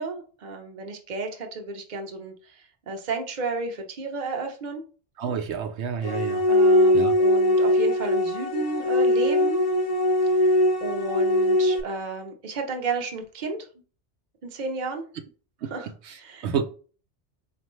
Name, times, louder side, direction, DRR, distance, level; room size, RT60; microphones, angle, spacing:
voice 1, 0.0-2.3 2.9-4.8 6.5-9.7 10.8-13.6 14.5-15.1 15.6-16.5, right 3 dB, 45° right, 0.8 m, -32 dB
voice 2, 5.2-6.4 6.9-7.1 15.6-15.7 16.1-16.2 16.4-16.6, right 7 dB, 80° right, 0.9 m, -29 dB
sound 1, 6.0-11.8, left 1 dB, 40° left, 0.6 m, -21 dB
4.4 x 2.6 x 3.0 m
omnidirectional pair, 1.1 m